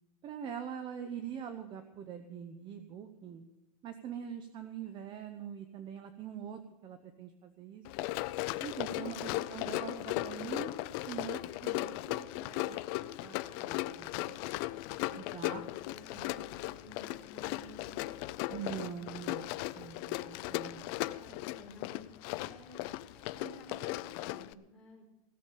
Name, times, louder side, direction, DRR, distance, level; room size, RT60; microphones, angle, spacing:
voice 1, 0.2-3.4 3.8-7.8 8.6-10.7 11.1-12.9 13.2-14.6 15.1-15.6 18.5-20.9, right 8 dB, 25° right, 9 dB, 0.7 m, -44 dB
Run, 7.8-24.5, left 18 dB, 40° left, 0.4 m, -37 dB
voice 2, 14.9-16.3 16.6-18.4 19.9-20.0 20.5-25.0, left 1 dB, 5° left, -5 dB, 5.1 m, -54 dB
17.0 x 7.2 x 8.5 m, 0.93 s
supercardioid pair, 160°, 19 cm